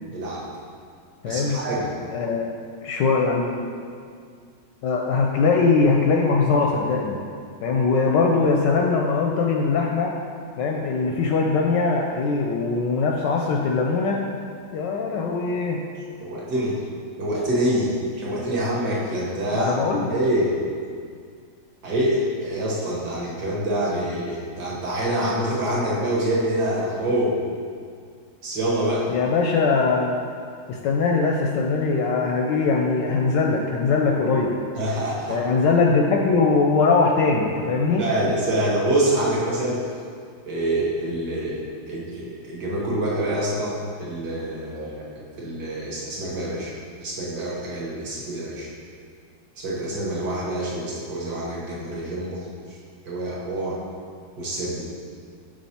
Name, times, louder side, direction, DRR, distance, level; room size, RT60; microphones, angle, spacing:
voice 1, 0.1-0.4 1.3-1.9 16.2-16.8 17.2-19.7 20.1-20.5 21.8-27.4 28.4-29.1 34.8-35.4 38.0-39.8 40.5-41.6 41.9-46.7 47.0-48.7 49.6-52.8 53.1-53.8 54.4-54.8, right 1 dB, 55° right, -5 dB, 1.6 m, -26 dB
voice 2, 1.2-1.6 2.1-2.5 2.8-3.6 4.8-7.2 7.6-10.2 10.6-14.2 14.7-15.8 19.5-20.2 29.1-30.3 30.7-34.5 35.3-38.0, left 4 dB, 75° left, 0 dB, 1.1 m, -21 dB
6.3 x 4.7 x 4.2 m, 2.2 s
omnidirectional pair, 2.2 m